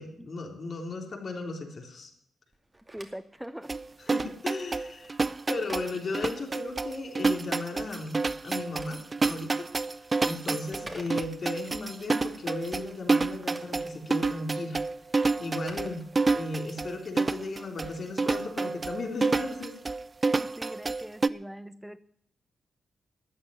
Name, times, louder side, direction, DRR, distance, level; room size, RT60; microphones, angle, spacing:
voice 1, 0.0-2.1 4.0-5.2 5.5-9.7 9.9-14.8 15.4-16.0 16.3-19.7, left 3 dB, 55° left, 3 dB, 3.3 m, -36 dB
Telephone, 2.5-7.0 8.3-11.7 13.1-16.7, right 2 dB, 25° right, 2.4 m, -52 dB
voice 2, 2.9-3.8 4.1-4.3 10.7-10.8 20.3-22.0, equal, 5° right, 15 dB, 1.1 m, -42 dB
sound 1, 3.7-21.3, right 3 dB, 40° right, 0.5 m, -29 dB
13.0 x 8.7 x 9.6 m, 0.69 s
supercardioid pair, 45°, 0 cm